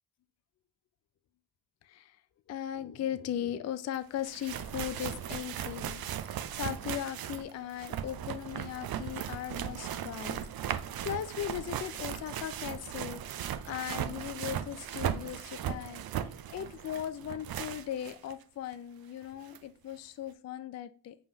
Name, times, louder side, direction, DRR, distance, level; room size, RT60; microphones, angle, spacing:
voice 1, 1.8-2.2 2.5-21.2, left 10 dB, 35° left, 12 dB, 0.4 m, -38 dB
sound 1, 3.9-4.0 4.2-18.3 18.7-18.8 19.5-19.6, right 10 dB, 50° right, 0.5 m, -37 dB
5.3 x 3.5 x 2.8 m, 0.42 s
cardioid pair, 60°, 49 cm